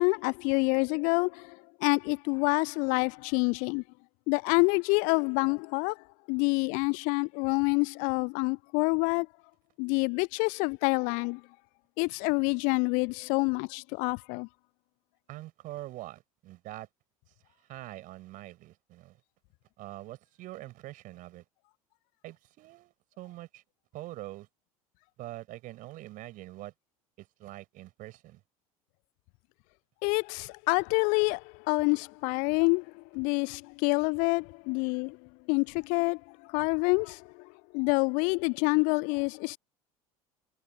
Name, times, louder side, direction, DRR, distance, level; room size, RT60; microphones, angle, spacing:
voice 1, 0.0-3.8 4.3-6.0 6.3-9.3 9.8-11.4 12.0-14.5 30.0-32.8 33.1-35.2 35.5-36.2 36.5-37.2 37.7-39.6, left 33 dB, 45° left, 0.4 m, -27 dB
voice 2, 15.3-16.9 17.7-19.2 19.8-21.4 22.2-23.6 23.9-24.5 25.2-26.7 27.2-28.4, right 17 dB, 45° right, 6.7 m, -44 dB
figure-of-eight pair, 70°, 19 cm